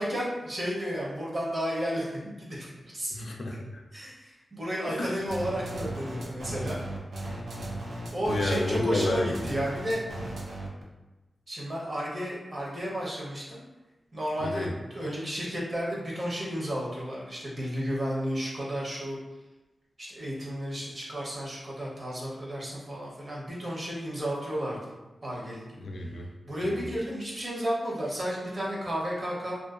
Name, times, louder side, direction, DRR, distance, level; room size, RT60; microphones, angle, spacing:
voice 1, 0.0-3.1 3.9-6.8 8.1-10.0 11.5-13.6 14.1-19.2 20.0-24.9 25.2-25.8 26.5-29.6, equal, 40° right, -5 dB, 0.7 m, -32 dB
voice 2, 3.1-3.8 4.9-5.2 8.3-9.3 14.4-14.7 25.8-26.3 26.6-26.8, left 2 dB, 70° left, 1 dB, 0.4 m, -31 dB
sound 1, 5.3-10.8, right 1 dB, 80° right, 0.5 m, -36 dB
2.5 x 2.2 x 2.4 m, 1.1 s
wide cardioid pair, 110°, 0 cm